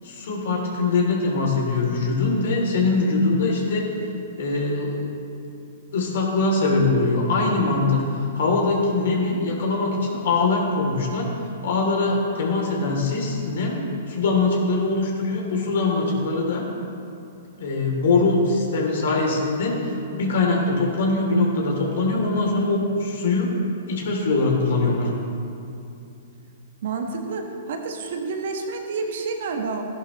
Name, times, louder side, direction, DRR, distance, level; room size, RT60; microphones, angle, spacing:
voice 1, 0.0-3.9 4.4-5.0 5.9-11.3 11.6-16.6 17.6-19.8 20.1-23.5 23.9-25.1, left 3 dB, 65° left, -1 dB, 2.9 m, -22 dB
voice 2, 26.8-29.8, right 4 dB, 60° right, 3 dB, 1.4 m, -29 dB
15.0 x 11.0 x 3.1 m, 2.6 s
hypercardioid pair, 120°, 0 cm